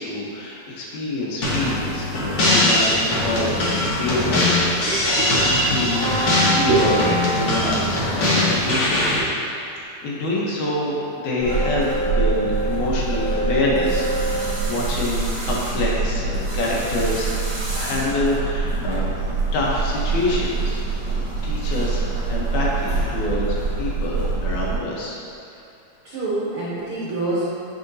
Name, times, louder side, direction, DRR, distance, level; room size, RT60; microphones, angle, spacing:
voice 1, 0.0-7.0 7.3-9.1 10.0-17.3 17.7-19.1 19.5-25.2, left 2 dB, 80° left, -4 dB, 2.4 m, -26 dB
sound 1, 1.4-9.2, left 1 dB, 60° left, 1.1 m, -21 dB
voice 2, 4.8-5.5 6.7-6.8 8.3-8.8 9.1-9.3 26.0-27.5, right 3 dB, 70° right, -9 dB, 1.3 m, -26 dB
sound 2, 5.8-8.0 11.3-14.5, right 1 dB, 45° left, 1.7 m, -27 dB
sound 3, 11.4-24.8, right 3 dB, 45° right, 2.0 m, -25 dB
7.7 x 4.8 x 2.7 m, 2.6 s
omnidirectional pair, 3.4 m